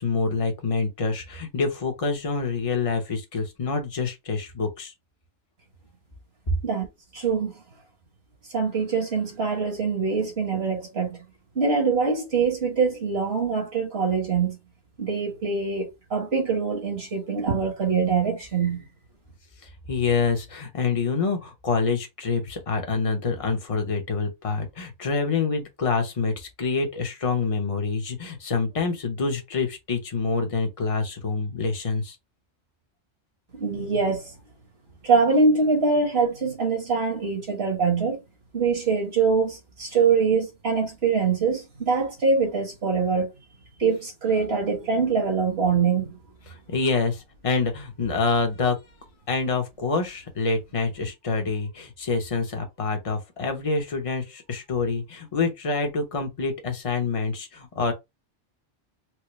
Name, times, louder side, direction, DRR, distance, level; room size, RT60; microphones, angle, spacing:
voice 1, 0.0-4.9 18.7-18.8 19.9-32.2 46.5-48.8 49.3-57.9, left 4 dB, 30° left, 0.9 m, -26 dB
voice 2, 7.1-7.5 8.5-11.2 11.5-14.6 15.0-18.8 33.5-34.3 35.0-38.2 38.5-43.3 43.8-46.1, right 5 dB, 55° right, 1.8 m, -24 dB
4.6 x 2.1 x 3.1 m
omnidirectional pair, 1.3 m